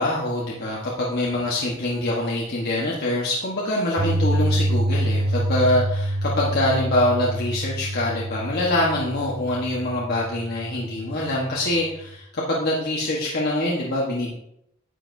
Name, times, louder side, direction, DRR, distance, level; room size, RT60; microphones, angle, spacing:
voice 1, 0.0-14.3, left 1 dB, 50° left, -4 dB, 1.3 m, -24 dB
Piano, 4.0-12.1, right 1 dB, 70° right, 2.2 m, -27 dB
9.9 x 8.2 x 2.7 m, 0.76 s
head